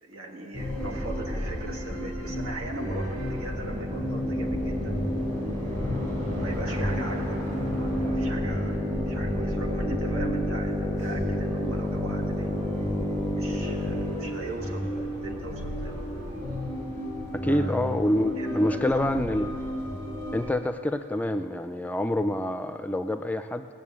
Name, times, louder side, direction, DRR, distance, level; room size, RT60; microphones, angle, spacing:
voice 1, 0.0-5.0 5.7-7.4 7.7-8.8 9.1-12.6 13.3-16.0 17.4-17.8 18.4-19.2, right 2 dB, 90° right, 0 dB, 1.9 m, -39 dB
sound 1, 0.5-20.5, equal, 40° right, 4.1 m, -32 dB
sound 2, 3.3-14.4, left 1 dB, 25° right, 1.0 m, -31 dB
voice 2, 17.3-19.5 20.3-23.7, left 1 dB, 5° left, 9 dB, 0.3 m, -26 dB
18.5 x 6.8 x 8.6 m, 2.6 s
head